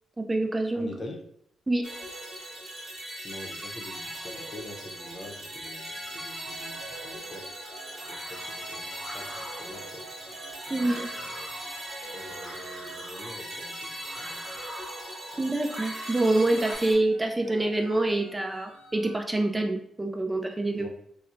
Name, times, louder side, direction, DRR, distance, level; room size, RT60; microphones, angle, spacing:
voice 1, 0.2-0.9 1.7-1.9 10.7-11.1 15.4-20.9, right 2 dB, 20° right, 4 dB, 0.3 m, -26 dB
voice 2, 0.8-1.2 3.2-7.5 8.1-10.1 10.7-11.5 12.1-14.5 15.3-15.5 20.8-20.9, left 1 dB, 40° left, 1 dB, 0.7 m, -45 dB
sound 1, 1.8-16.9, equal, 50° right, 1.1 m, -40 dB
sound 2, 5.0-14.6 15.0-19.2, right 3 dB, 65° right, 0.6 m, -48 dB
sound 3, 6.9-16.7, equal, ahead, 0.8 m, -45 dB
2.8 x 2.0 x 2.5 m, 0.72 s
hypercardioid pair, 45°, 0 cm